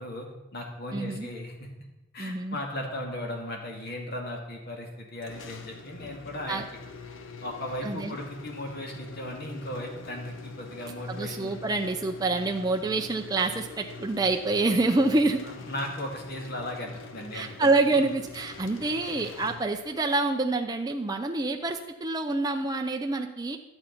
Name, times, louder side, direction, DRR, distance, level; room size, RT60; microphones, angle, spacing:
voice 1, 0.0-1.7 2.1-6.6 7.4-11.5 15.4-17.7, left 1 dB, 50° left, 1 dB, 2.1 m, -37 dB
voice 2, 0.9-1.3 2.2-2.6 6.5-6.6 7.8-8.1 11.1-15.4 17.3-23.6, right 3 dB, 20° right, 3 dB, 0.5 m, -27 dB
sound 1, 5.2-20.2, left 4 dB, 70° left, 0.9 m, -44 dB
11.0 x 8.0 x 5.3 m, 1.0 s
head